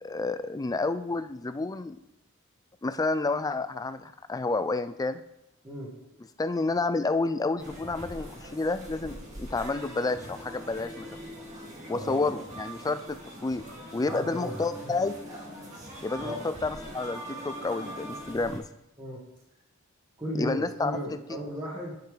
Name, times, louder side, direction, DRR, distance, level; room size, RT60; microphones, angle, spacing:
voice 1, 0.0-2.0 2.8-5.2 6.4-11.1 11.9-13.2 13.4-13.6 13.9-15.1 16.0-18.7 20.4-20.9, left 3 dB, 15° left, 11 dB, 0.3 m, -30 dB
sound 1, 7.6-18.6, equal, 35° right, 1.9 m, -42 dB
voice 2, 11.9-12.3 14.1-14.9 16.2-16.4 19.0-19.2 20.2-22.1, equal, 20° right, -7 dB, 1.7 m, -36 dB
10.5 x 5.7 x 3.3 m, 0.87 s
head